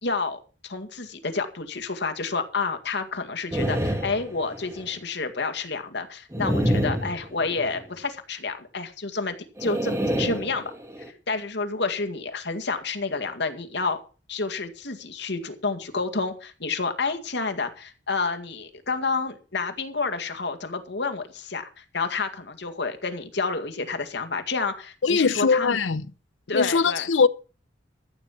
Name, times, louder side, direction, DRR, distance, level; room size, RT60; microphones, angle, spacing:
voice 1, 0.0-10.7 11.3-14.0 14.3-25.8 26.5-27.1, left 4 dB, 65° left, 2.1 m, -29 dB
sound 1, 3.5-4.9 6.3-7.8 9.6-11.1, equal, 15° right, 2.1 m, -28 dB
voice 2, 25.0-26.0 26.5-27.3, left 5 dB, 85° left, 0.7 m, -21 dB
14.0 x 7.3 x 7.4 m
head